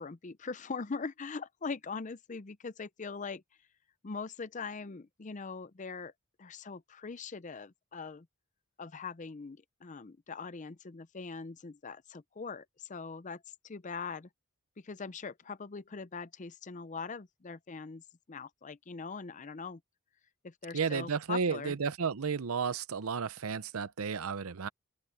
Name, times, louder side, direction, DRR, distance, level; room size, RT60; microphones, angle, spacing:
voice 1, 0.0-3.4 4.0-6.1 6.4-8.3 8.8-14.3 14.8-18.0 18.3-19.8 20.4-21.8, left 4 dB, 35° left, 0.5 m, -41 dB
voice 2, 20.7-24.7, right 5 dB, 80° right, 0.7 m, -33 dB
open air
head